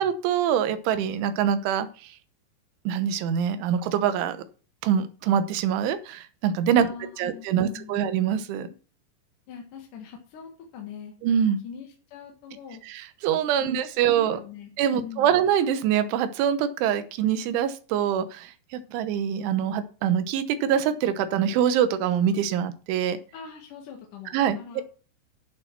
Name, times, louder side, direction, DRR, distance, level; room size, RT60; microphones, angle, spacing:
voice 1, 0.0-2.1 2.9-4.4 4.8-6.9 7.2-8.7 11.2-11.6 12.9-14.4 14.8-23.2 24.3-24.8, right 9 dB, 80° right, 12 dB, 3.4 m, -24 dB
voice 2, 6.8-8.0 9.5-11.1 11.6-12.8 13.6-15.4 23.3-24.8, left 7 dB, 55° left, 1 dB, 2.6 m, -42 dB
11.5 x 6.8 x 5.9 m, 0.37 s
omnidirectional pair, 5.4 m